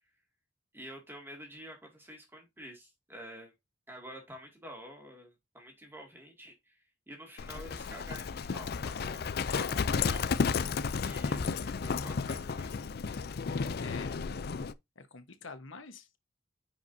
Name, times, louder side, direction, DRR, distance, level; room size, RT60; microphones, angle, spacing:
voice 1, 0.7-3.5 3.9-10.3 11.0-12.7, equal, 10° right, 2.3 m, -49 dB
Livestock farm animals working animals, 7.4-14.7, left 5 dB, 50° left, 0.4 m, -33 dB
voice 2, 13.8-14.3 14.9-16.2, left 4 dB, 90° left, 1.3 m, -47 dB
9.9 x 4.9 x 2.7 m
head